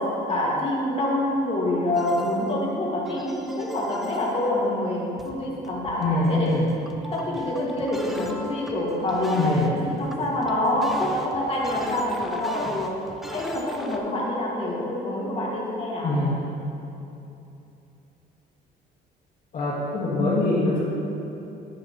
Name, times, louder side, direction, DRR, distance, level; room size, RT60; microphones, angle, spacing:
voice 1, 0.0-6.6 7.1-16.1, left 1 dB, 35° left, -4 dB, 2.1 m, -26 dB
sound 1, 1.9-14.0, equal, ahead, 0.7 m, -38 dB
voice 2, 6.0-6.7 9.3-9.7 16.0-16.5 19.5-20.8, left 2 dB, 55° left, -7 dB, 1.7 m, -23 dB
10.0 x 8.4 x 3.1 m, 2.9 s
cardioid pair, 110°, 17 cm